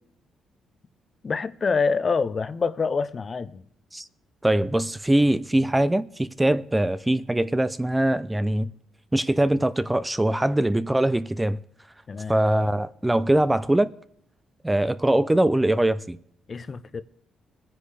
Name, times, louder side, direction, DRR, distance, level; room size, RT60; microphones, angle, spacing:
voice 1, 1.2-3.6 12.1-12.4 16.5-17.0, left 5 dB, 40° left, 0.6 m, -26 dB
voice 2, 4.4-8.7 9.1-11.6 12.3-13.9 14.6-16.2, right 1 dB, 10° right, 0.5 m, -22 dB
20.0 x 10.0 x 3.3 m
cardioid pair, 90°, 0 cm